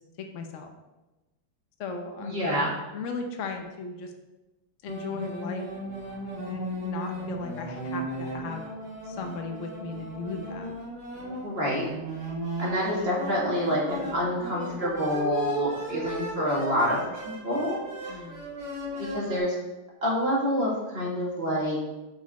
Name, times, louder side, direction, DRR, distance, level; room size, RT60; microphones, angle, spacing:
voice 1, 0.3-0.7 1.8-2.4 2.9-4.1 4.8-5.7 6.5-8.6 9.0-10.7 18.1-18.5, left 4 dB, 90° left, 4 dB, 0.6 m, -36 dB
voice 2, 2.2-2.7 11.4-11.9 12.6-17.8 18.0-18.2 19.0-19.5 20.0-21.8, equal, 30° right, -4 dB, 1.9 m, -27 dB
sound 1, 4.9-19.4, right 1 dB, 45° right, 3.1 m, -36 dB
7.6 x 5.3 x 4.2 m, 1.1 s
omnidirectional pair, 2.4 m